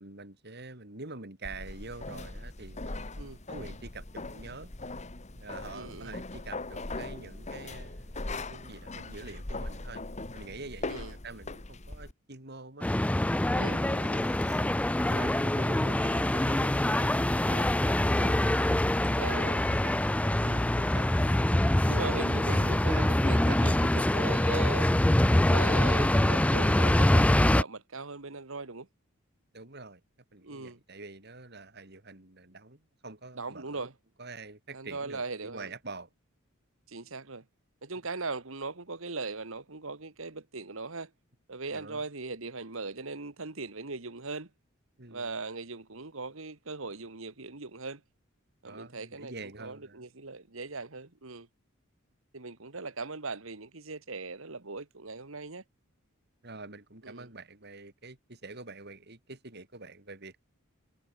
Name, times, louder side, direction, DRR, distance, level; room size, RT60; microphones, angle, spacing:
voice 1, 0.0-3.0 3.5-4.7 5.3-10.0 10.3-12.9 13.5-14.7 15.1-19.9 22.8-23.9 29.5-30.0 30.3-33.9 34.2-36.1 41.7-42.0 45.0-45.3 48.6-50.0 56.4-60.5, right 3 dB, 50° right, 3.4 m, -46 dB
sound 1, 1.4-12.1, left 2 dB, 35° left, 1.5 m, -40 dB
voice 2, 5.7-6.2 10.9-11.1 13.5-14.2 19.2-19.6 20.4-20.9 21.8-24.9 25.3-28.9 30.4-30.8 33.4-33.9 34.7-35.7 36.9-37.5 37.8-41.1 41.5-44.5 45.1-48.0 48.6-51.5 52.3-55.6 57.0-57.3, right 3 dB, 70° right, 1.8 m, -39 dB
sound 2, 12.8-27.6, left 1 dB, 5° left, 0.4 m, -25 dB
head